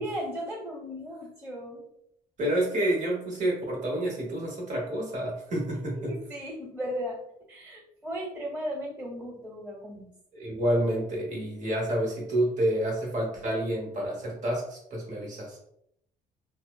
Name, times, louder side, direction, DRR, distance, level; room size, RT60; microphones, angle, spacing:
voice 1, 0.0-1.8 6.1-7.2 7.5-10.1, equal, 10° right, -3 dB, 1.1 m, -36 dB
voice 2, 2.4-6.1 10.3-15.6, right 1 dB, 45° right, -2 dB, 1.0 m, -29 dB
3.0 x 2.0 x 2.3 m, 0.74 s
cardioid pair, 110°, 17 cm